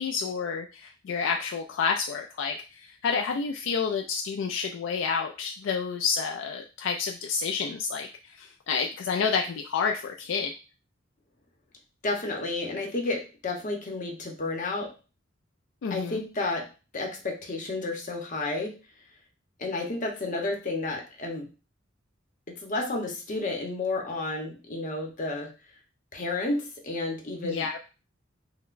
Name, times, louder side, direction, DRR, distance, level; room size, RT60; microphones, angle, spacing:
voice 1, 0.0-10.5 15.8-16.2 27.4-27.8, left 5 dB, 70° left, 2 dB, 0.3 m, -29 dB
voice 2, 12.0-14.9 15.9-16.7 16.9-18.7 19.6-21.5 22.5-25.5 26.1-27.7, left 2 dB, 40° left, 1 dB, 0.8 m, -31 dB
5.7 x 2.1 x 2.5 m, 0.33 s
head